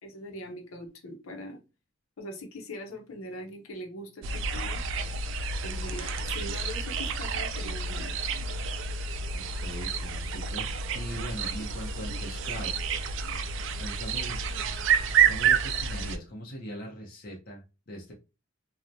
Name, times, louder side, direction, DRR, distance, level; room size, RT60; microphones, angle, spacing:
voice 1, 0.0-1.6 2.2-4.8 5.6-8.1, left 1 dB, 85° left, 2 dB, 0.7 m, -41 dB
sound 1, 4.2-16.2, right 6 dB, 65° right, 0.3 m, -29 dB
voice 2, 9.3-12.7 13.8-14.4 15.2-18.1, equal, 45° left, -2 dB, 0.7 m, -40 dB
2.9 x 2.0 x 2.5 m, 0.30 s
head